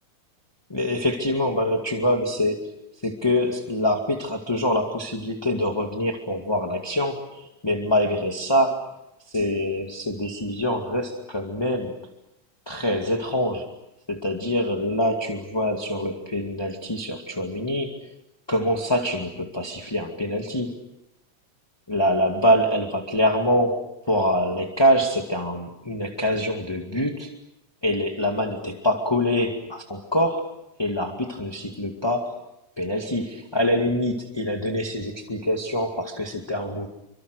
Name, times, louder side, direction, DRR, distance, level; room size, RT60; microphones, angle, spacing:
voice 1, 0.7-2.7 3.0-8.9 9.3-12.0 12.6-13.7 14.1-18.0 18.5-20.8 21.9-27.3 27.8-32.4 32.8-36.9, equal, 10° left, 2 dB, 1.5 m, -25 dB
29.5 x 25.0 x 6.5 m, 0.87 s
omnidirectional pair, 3.8 m